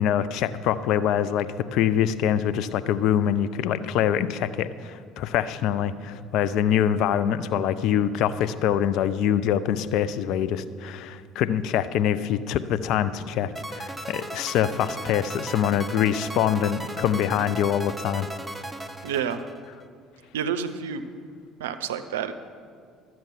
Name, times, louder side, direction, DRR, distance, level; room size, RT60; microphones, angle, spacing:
voice 1, 0.0-18.3, left 9 dB, 65° left, 13 dB, 0.4 m, -24 dB
sound 1, 13.6-19.9, right 1 dB, 10° right, 0.8 m, -37 dB
voice 2, 19.0-19.4 20.3-21.1 21.6-22.3, right 7 dB, 80° right, 11 dB, 0.5 m, -29 dB
12.0 x 7.6 x 5.7 m, 2.1 s
hypercardioid pair, 60°, 0 cm